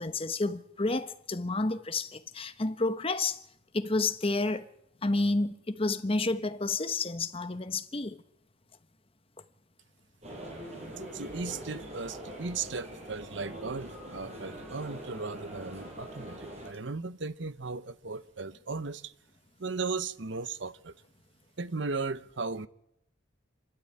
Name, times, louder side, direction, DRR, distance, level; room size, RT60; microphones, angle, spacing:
voice 1, 0.0-3.4 3.7-4.7 5.0-8.2, left 2 dB, 30° left, 1.0 m, -30 dB
sound 1, 10.2-16.7, right 1 dB, 35° right, 6.4 m, -43 dB
voice 2, 11.1-19.1 19.6-21.0 21.6-22.7, right 4 dB, 65° right, 0.9 m, -36 dB
26.5 x 12.5 x 8.7 m
head